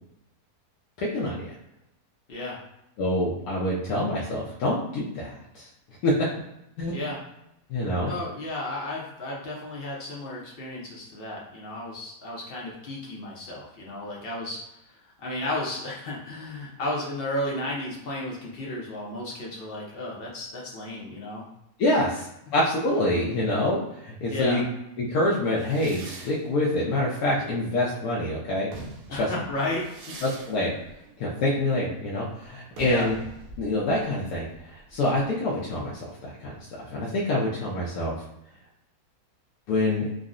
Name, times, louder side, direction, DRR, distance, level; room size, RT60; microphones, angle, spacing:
voice 1, 1.0-1.5 3.0-5.7 6.0-6.1 6.8-6.9 7.7-8.1 21.8-24.6 25.0-28.7 29.1-29.3 30.2-30.8 31.2-33.1 33.6-36.5 36.8-38.2 39.7-40.1, left 1 dB, 80° left, -6 dB, 1.1 m, -26 dB
voice 2, 8.1-21.4 24.3-24.6 29.1-30.1 32.8-33.1, left 1 dB, 55° left, -3 dB, 0.7 m, -33 dB
sound 1, 25.6-28.0 28.5-36.0, right 3 dB, 70° right, 1.0 m, -45 dB
3.7 x 2.0 x 2.4 m, 0.83 s
omnidirectional pair, 1.6 m